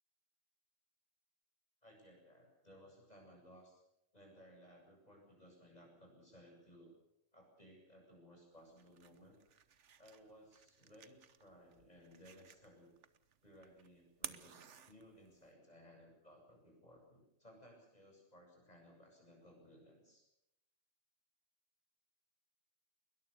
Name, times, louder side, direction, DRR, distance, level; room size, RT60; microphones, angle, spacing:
voice 1, 1.8-3.8 4.1-6.9 7.3-9.4 10.0-12.9 13.4-20.2, equal, 35° left, 1 dB, 8.2 m, -61 dB
sound 1, 8.5-15.5, right 7 dB, 75° right, 1.4 m, -55 dB
21.5 x 21.0 x 6.8 m, 0.83 s
omnidirectional pair, 1.2 m